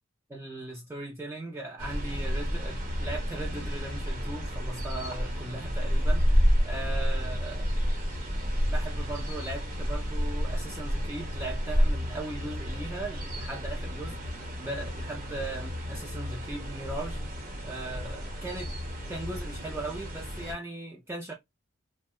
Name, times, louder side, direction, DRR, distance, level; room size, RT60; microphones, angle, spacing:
voice 1, 0.3-6.2 6.6-7.7 8.7-17.2 17.6-18.7 19.1-21.3, right 2 dB, 10° right, 0.4 m, -38 dB
sound 1, 1.8-20.5, equal, 45° right, 0.9 m, -30 dB
2.7 x 2.1 x 3.0 m
head